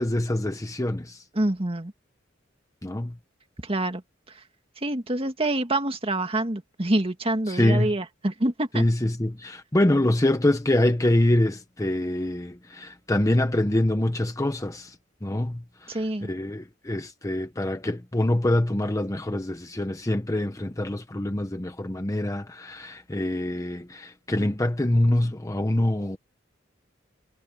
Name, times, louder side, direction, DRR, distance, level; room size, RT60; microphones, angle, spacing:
voice 1, 0.0-1.2 2.8-3.2 7.5-7.9 8.7-15.0 15.2-26.2, left 1 dB, 15° left, 0.9 m, -25 dB
voice 2, 1.3-1.9 3.6-4.0 4.3-4.4 4.8-8.8 15.9-16.3, right 1 dB, 30° right, 2.0 m, -26 dB
head